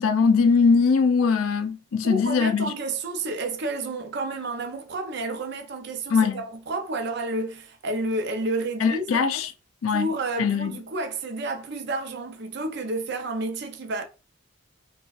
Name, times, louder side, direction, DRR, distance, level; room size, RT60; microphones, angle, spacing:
voice 1, 0.0-2.7 6.1-6.4 8.8-9.5 9.8-10.1 10.4-10.7, left 5 dB, 80° left, 0.4 m, -21 dB
voice 2, 2.0-9.2 9.9-14.0, right 2 dB, 55° right, 0.6 m, -30 dB
4.0 x 2.3 x 2.4 m
head